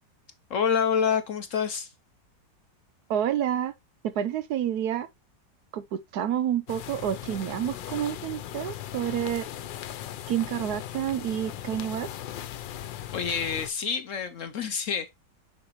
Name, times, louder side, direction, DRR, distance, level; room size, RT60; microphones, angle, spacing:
voice 1, 0.5-1.9 13.1-15.1, left 7 dB, 65° left, 0.8 m, -27 dB
voice 2, 3.1-3.7 4.0-5.1 5.7-9.5 10.3-12.1, right 10 dB, 70° right, 1.0 m, -29 dB
sound 1, 6.7-13.7, left 11 dB, 85° left, 1.4 m, -38 dB
6.7 x 5.9 x 3.0 m
omnidirectional pair, 2.0 m